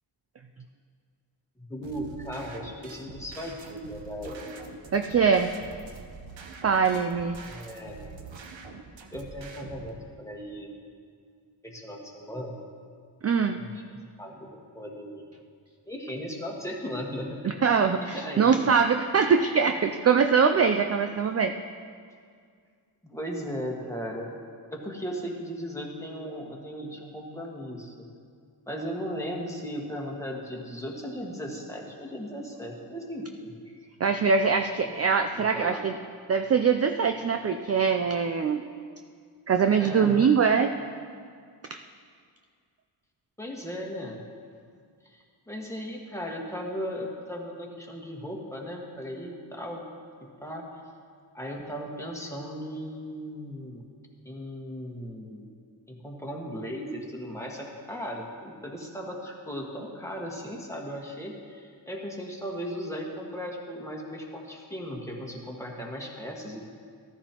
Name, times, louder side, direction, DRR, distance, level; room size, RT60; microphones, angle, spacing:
voice 1, 1.6-4.6 7.4-8.2 9.1-10.7 11.6-12.6 13.6-15.3 15.8-17.8 18.1-18.7 23.0-24.3 24.7-28.1 28.7-33.6 35.3-35.8 39.8-40.3 43.4-44.3 45.0-49.8 50.2-50.7 51.3-53.9 54.2-55.5 55.9-66.7, equal, 5° left, -1 dB, 1.6 m, -37 dB
sound 1, 1.8-9.9, right 4 dB, 90° right, 1.0 m, -45 dB
voice 2, 4.9-5.5 6.6-7.4 13.2-13.6 17.4-21.5 34.0-35.9 36.3-38.6 39.5-40.7 41.7-41.8, right 6 dB, 35° right, 6 dB, 0.4 m, -23 dB
14.0 x 13.0 x 3.0 m, 2.1 s
wide cardioid pair, 100°, 45 cm